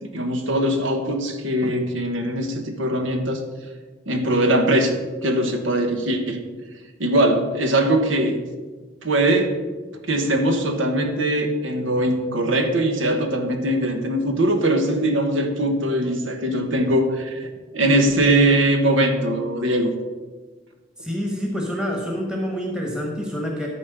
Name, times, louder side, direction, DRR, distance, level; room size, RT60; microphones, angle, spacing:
voice 1, 0.0-3.4 4.1-4.9 5.2-6.4 7.0-8.4 9.0-9.6 10.0-19.9, right 1 dB, 90° right, 5 dB, 1.3 m, -21 dB
voice 2, 21.0-23.7, equal, 5° right, 0 dB, 1.2 m, -27 dB
13.0 x 4.3 x 6.8 m, 1.3 s
head